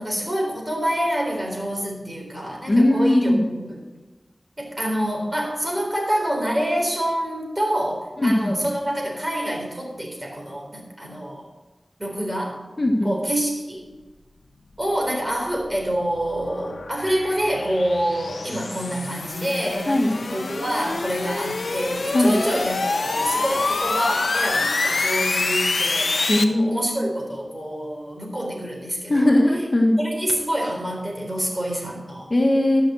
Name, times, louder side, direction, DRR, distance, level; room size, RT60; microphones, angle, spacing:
voice 1, 0.0-3.8 4.6-11.5 12.0-12.7 13.0-13.9 14.8-29.4 30.0-32.3, equal, 25° right, -1 dB, 4.1 m, -27 dB
voice 2, 2.7-3.4 8.2-8.5 12.8-13.2 19.9-20.1 22.1-22.4 26.3-27.0 29.1-30.0 32.3-32.8, left 1 dB, 40° left, 0 dB, 1.7 m, -19 dB
sound 1, 15.1-26.4, left 3 dB, 90° left, 0.7 m, -26 dB
13.0 x 6.2 x 6.3 m, 1.2 s
wide cardioid pair, 50°, 0 cm